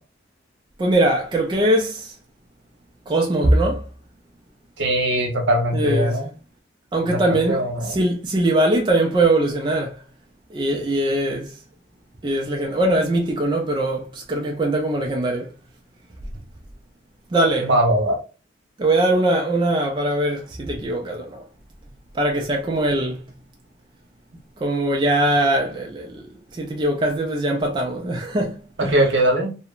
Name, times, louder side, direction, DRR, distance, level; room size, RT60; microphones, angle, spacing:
voice 1, 0.8-2.1 3.1-3.8 5.7-6.2 6.9-9.9 10.5-11.5 12.2-15.5 17.3-17.7 18.8-21.4 22.2-23.2 24.6-26.2 26.6-29.0, right 1 dB, 25° right, 0.3 m, -21 dB
voice 2, 4.8-6.3 7.0-8.0 17.6-18.2 28.8-29.5, right 1 dB, 80° right, 0.9 m, -21 dB
2.9 x 2.1 x 2.3 m
head